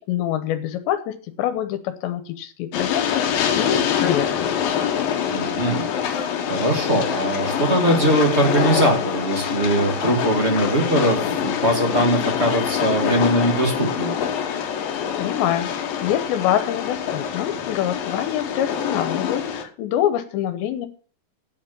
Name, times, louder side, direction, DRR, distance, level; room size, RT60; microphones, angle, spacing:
voice 1, 0.1-4.5 15.2-20.9, left 11 dB, 85° left, 10 dB, 3.2 m, -25 dB
Train, 2.7-19.6, left 8 dB, 65° left, 2.8 m, -25 dB
voice 2, 5.3-14.1, right 1 dB, 30° right, 2 dB, 1.1 m, -21 dB
9.4 x 8.5 x 6.9 m, 0.39 s
omnidirectional pair, 5.0 m